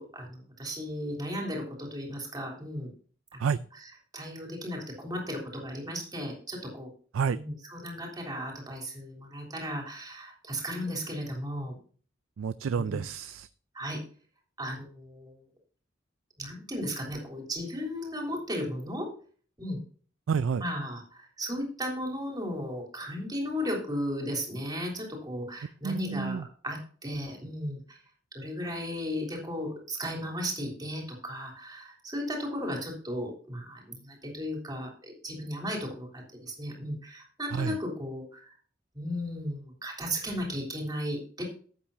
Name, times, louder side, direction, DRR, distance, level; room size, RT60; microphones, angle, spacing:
voice 1, 0.0-2.9 3.3-3.4 3.7-6.9 7.4-11.7 12.8-13.0 13.7-14.0 14.6-15.3 16.4-19.1 19.6-19.8 20.6-28.0 28.3-38.4 38.9-41.4, equal, 20° right, 0 dB, 3.4 m, -35 dB
voice 2, 12.4-13.5 20.3-20.6 25.8-26.4 37.5-37.8, right 6 dB, 70° right, 14 dB, 0.4 m, -29 dB
12.5 x 8.7 x 2.7 m, 0.43 s
head